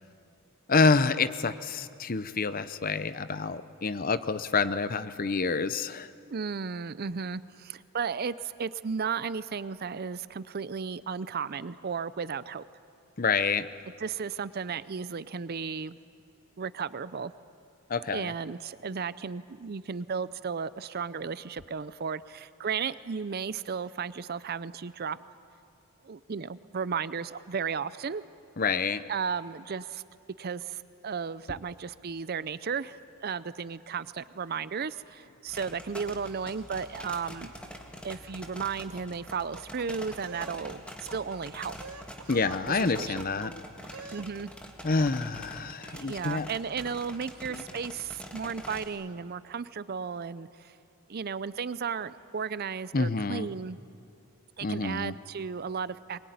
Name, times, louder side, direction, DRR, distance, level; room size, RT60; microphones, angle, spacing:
voice 1, 0.7-6.1 13.2-13.7 17.9-18.3 28.6-29.0 42.3-43.5 44.8-46.5 47.5-47.6 52.9-53.5 54.6-55.1, left 4 dB, 40° left, 13 dB, 0.7 m, -27 dB
voice 2, 6.3-12.6 14.0-16.0 16.6-17.3 18.1-25.2 26.0-28.2 29.1-30.0 30.4-37.5 38.0-40.8 41.1-41.8 42.7-43.2 44.1-44.5 45.8-50.7 51.1-53.8 54.6-56.2, right 6 dB, 45° right, 16 dB, 0.5 m, -34 dB
sound 1, 35.5-48.9, equal, 5° left, 1.7 m, -45 dB
sound 2, 39.3-40.6 40.9-41.4 41.7-42.6 43.0-43.5 43.8-44.3, right 4 dB, 80° right, 1.2 m, -45 dB
22.5 x 21.0 x 9.4 m, 2.5 s
head